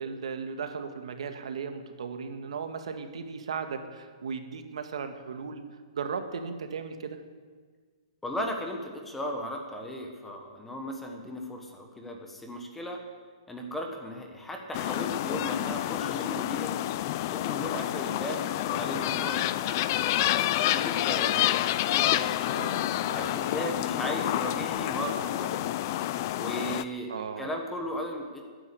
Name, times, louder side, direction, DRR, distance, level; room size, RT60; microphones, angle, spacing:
voice 1, 0.0-5.6 5.9-7.2 22.5-23.4 27.1-27.5, right 5 dB, 70° right, 7 dB, 1.8 m, -36 dB
voice 2, 8.2-13.0 13.5-16.8 17.3-19.8 20.2-22.3 23.1-25.7 26.4-28.4, equal, 5° left, 2 dB, 1.3 m, -36 dB
sound 1, 14.7-26.8, left 14 dB, 30° left, 0.5 m, -28 dB
15.0 x 9.9 x 8.3 m, 1.5 s
hypercardioid pair, 170°, 3 cm